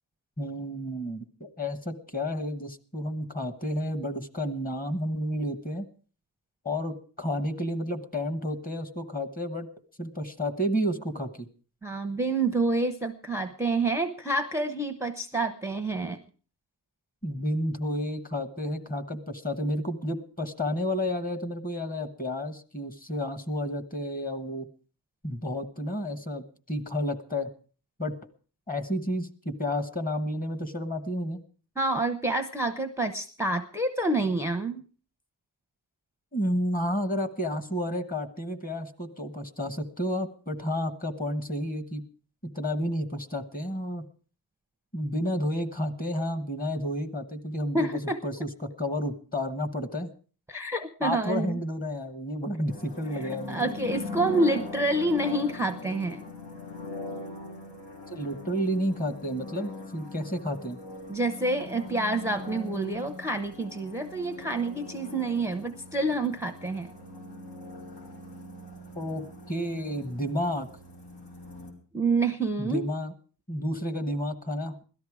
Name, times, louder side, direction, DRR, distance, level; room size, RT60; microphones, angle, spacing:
voice 1, 0.4-5.9 6.6-9.7 10.0-11.5 17.2-24.7 25.2-27.5 28.0-28.1 28.7-31.4 36.3-42.0 42.5-44.0 44.9-48.5 48.8-50.1 51.0-53.7 58.1-60.8 68.9-70.7 72.6-73.1 73.5-74.8, equal, 20° left, 9 dB, 1.2 m, -31 dB
voice 2, 11.8-16.2 31.8-34.8 47.7-48.2 50.5-51.6 53.1-56.2 61.1-66.9 71.9-72.8, right 2 dB, 5° right, 8 dB, 0.6 m, -28 dB
sound 1, 52.7-71.7, left 3 dB, 85° left, 3.6 m, -41 dB
17.5 x 13.0 x 4.8 m, 0.39 s
wide cardioid pair, 170°, 40 cm